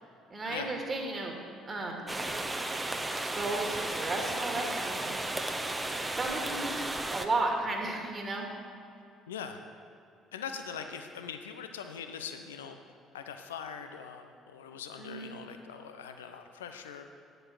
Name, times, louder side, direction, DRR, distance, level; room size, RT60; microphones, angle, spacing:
voice 1, 0.3-1.4 1.6-2.1 3.3-5.0 5.3-5.6 6.2-8.5 15.0-15.4, right 2 dB, 35° right, 1 dB, 2.0 m, -34 dB
sound 1, 2.1-7.3, right 2 dB, 15° right, 0.8 m, -34 dB
voice 2, 9.3-9.6 10.3-12.8 13.1-17.1, left 7 dB, 80° left, 7 dB, 0.6 m, -42 dB
9.4 x 8.0 x 6.0 m, 2.5 s
figure-of-eight pair, 50°, 0 cm